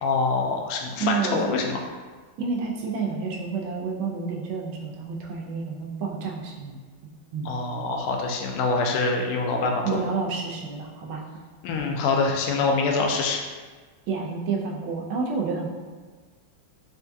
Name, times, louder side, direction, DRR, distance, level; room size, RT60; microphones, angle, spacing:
voice 1, 0.0-1.9 7.4-10.0 11.6-13.4, left 3 dB, 90° left, 1 dB, 1.5 m, -25 dB
voice 2, 1.0-1.4 2.4-7.5 7.8-7.9 9.8-11.2 14.1-15.7, right 5 dB, 75° right, -1 dB, 1.3 m, -30 dB
4.4 x 2.3 x 2.6 m, 1.4 s
omnidirectional pair, 2.3 m